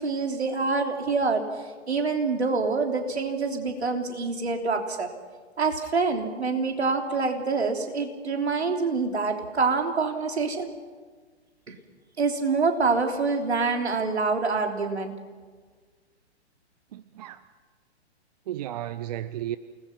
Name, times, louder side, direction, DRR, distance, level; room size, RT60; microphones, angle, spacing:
voice 1, 0.0-1.4 1.9-5.1 5.6-10.7 11.7-11.8 12.2-15.1, right 4 dB, 70° right, 3.5 m, -26 dB
voice 2, 16.9-17.4 18.5-19.6, right 12 dB, 35° right, 0.7 m, -33 dB
29.0 x 20.0 x 5.9 m
figure-of-eight pair, 120°, 34 cm